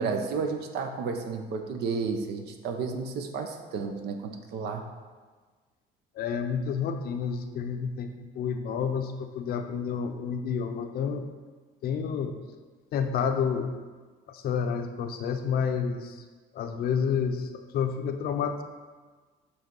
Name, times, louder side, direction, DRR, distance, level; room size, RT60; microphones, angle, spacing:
voice 1, 0.0-4.8, right 5 dB, 75° right, 5 dB, 0.8 m, -32 dB
voice 2, 6.1-11.3 11.8-12.4 12.9-13.8 14.3-16.2 16.5-18.6, left 6 dB, 65° left, 7 dB, 0.6 m, -29 dB
7.3 x 3.3 x 5.4 m, 1.4 s
cardioid pair, 110°, 17 cm